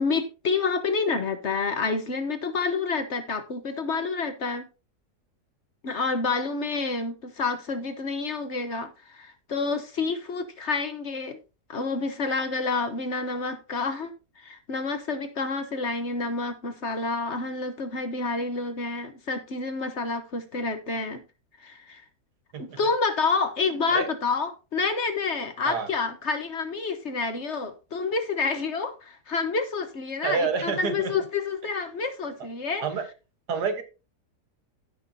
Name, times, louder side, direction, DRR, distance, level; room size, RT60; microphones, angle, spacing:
voice 1, 0.0-4.7 5.8-11.4 11.7-21.2 21.6-22.0 22.6-32.8, left 4 dB, 50° left, 1.3 m, -28 dB
voice 2, 30.2-31.1 32.8-33.1 33.5-33.8, right 5 dB, 85° right, 1.9 m, -28 dB
16.5 x 5.8 x 2.8 m
omnidirectional pair, 1.7 m